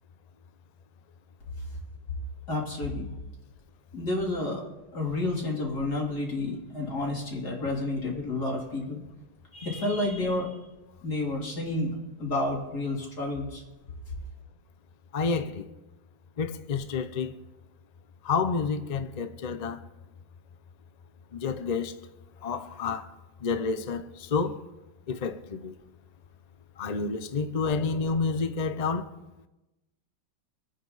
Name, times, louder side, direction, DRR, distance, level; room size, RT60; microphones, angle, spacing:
voice 1, 2.5-3.1 3.9-4.6 4.9-9.0 9.5-10.5 11.0-11.9 12.2-13.6, left 2 dB, 55° left, 3.9 m, -30 dB
voice 2, 15.1-15.6 16.4-17.3 18.2-19.8 21.3-21.9 22.4-23.1 23.4-24.6 25.1-25.7 26.8-29.1, left 5 dB, 75° left, 0.3 m, -29 dB
26.5 x 9.5 x 4.1 m
omnidirectional pair, 2.0 m